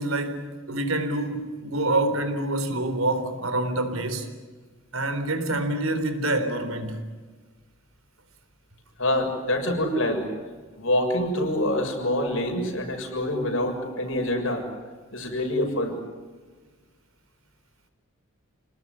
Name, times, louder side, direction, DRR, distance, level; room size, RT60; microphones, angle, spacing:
voice 1, 0.0-4.3 4.9-7.0, right 2 dB, 90° right, 3.9 m, -26 dB
voice 2, 9.0-10.3 10.7-14.7 15.1-16.0, left 1 dB, 75° left, 6.7 m, -26 dB
28.5 x 19.5 x 9.9 m
head